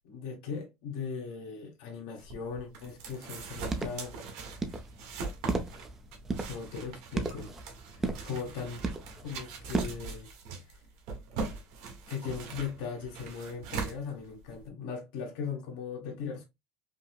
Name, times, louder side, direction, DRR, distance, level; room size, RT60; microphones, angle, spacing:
voice 1, 0.0-4.1 6.4-7.5 8.0-8.8 9.2-10.3 12.1-16.4, left 6 dB, 85° left, 1.3 m, -38 dB
sound 1, 2.2-14.7, right 4 dB, 75° right, 1.3 m, -41 dB
sound 2, 3.5-10.0, right 3 dB, 15° right, 0.5 m, -36 dB
5.2 x 2.0 x 2.3 m
cardioid pair, 170°, 3 cm